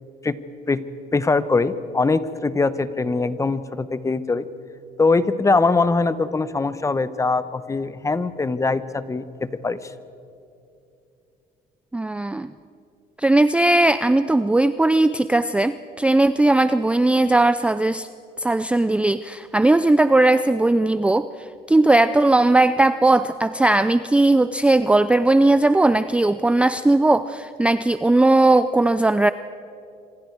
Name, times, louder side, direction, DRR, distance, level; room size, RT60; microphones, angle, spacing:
voice 1, 1.1-4.5 5.0-9.9, left 3 dB, 20° left, 14 dB, 0.9 m, -22 dB
voice 2, 11.9-12.5 13.2-18.1 18.4-21.3 21.7-29.3, right 2 dB, 5° right, 12 dB, 0.4 m, -18 dB
26.5 x 25.5 x 4.7 m, 2.6 s
cardioid pair, 110°, 17 cm